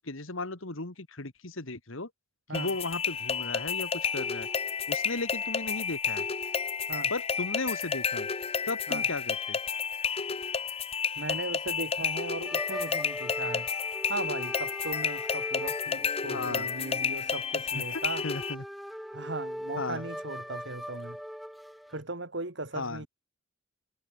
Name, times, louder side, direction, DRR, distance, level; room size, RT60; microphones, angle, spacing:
voice 1, 0.0-2.1 2.5-4.5 4.9-6.2 7.1-8.3 8.7-9.6 16.3-16.7 17.7-18.6 19.8-20.1 22.8-23.1, left 2 dB, 70° left, 2.3 m, -36 dB
sound 1, 2.5-18.5, left 6 dB, 30° left, 0.6 m, -31 dB
voice 2, 11.2-13.7 14.1-18.3 19.1-21.2 21.9-23.1, right 2 dB, 55° right, 2.3 m, -37 dB
sound 2, 12.5-22.0, equal, ahead, 1.3 m, -41 dB
head